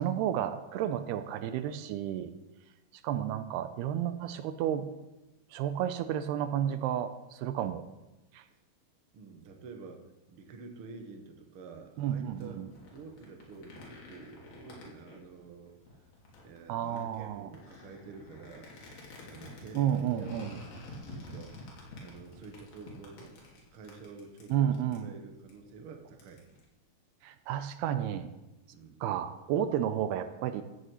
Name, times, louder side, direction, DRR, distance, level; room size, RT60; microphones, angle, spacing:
voice 1, 0.0-2.3 3.0-4.9 5.5-7.9 8.3-8.4 12.0-12.7 16.7-17.5 19.7-20.6 24.5-25.1 27.2-28.3 29.0-30.6, right 10 dB, 85° right, 10 dB, 2.7 m, -31 dB
voice 2, 9.1-15.7 16.4-18.7 19.2-26.4 28.7-29.0, right 4 dB, 55° right, 3 dB, 1.6 m, -49 dB
sound 1, 12.3-26.6, left 2 dB, 65° left, 4.7 m, -50 dB
14.0 x 7.8 x 8.3 m, 1.0 s
omnidirectional pair, 4.8 m